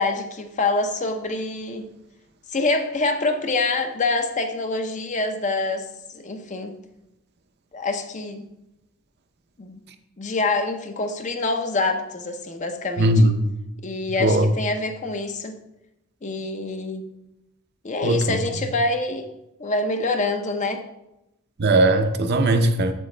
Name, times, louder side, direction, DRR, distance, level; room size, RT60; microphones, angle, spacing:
voice 1, 0.0-1.8 2.5-5.9 6.1-6.7 7.7-8.5 9.6-9.8 10.2-13.2 13.8-15.6 16.2-17.1 17.8-19.3 19.6-20.8, left 3 dB, 35° left, 0.6 m, -26 dB
voice 2, 13.0-13.4 14.2-14.5 18.0-18.4 21.6-22.9, right 1 dB, 50° right, 0.6 m, -18 dB
7.7 x 7.1 x 3.2 m
head